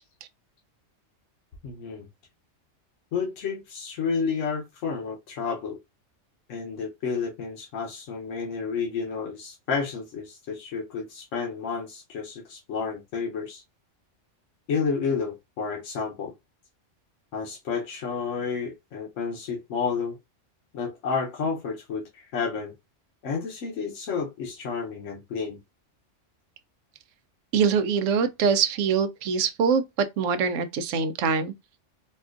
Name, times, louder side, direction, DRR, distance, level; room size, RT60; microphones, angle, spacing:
voice 1, 1.6-2.1 3.1-5.8 6.5-13.6 14.7-16.3 17.3-20.2 20.7-22.7 23.2-25.6, left 5 dB, 80° left, 1.2 m, -31 dB
voice 2, 27.5-31.5, right 6 dB, 90° right, 1.0 m, -24 dB
4.2 x 2.3 x 2.5 m
omnidirectional pair, 1.3 m